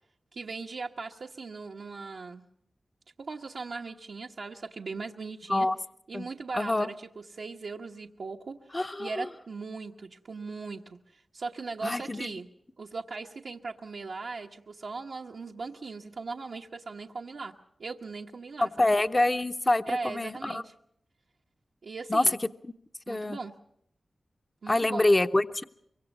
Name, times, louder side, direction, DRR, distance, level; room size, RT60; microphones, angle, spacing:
voice 1, 0.3-2.4 3.2-5.7 6.1-12.5 12.8-17.5 17.8-18.9 19.9-20.7 21.8-22.4 23.1-23.5 24.6-25.0, right 4 dB, 80° right, -1 dB, 1.1 m, -39 dB
voice 2, 6.5-6.9 8.7-9.3 11.8-12.3 18.6-20.6 22.1-22.2 22.6-22.7 23.1-23.4 24.7-25.6, left 2 dB, 30° left, 9 dB, 0.8 m, -26 dB
25.0 x 23.5 x 5.4 m, 0.74 s
cardioid pair, 60°, 0 cm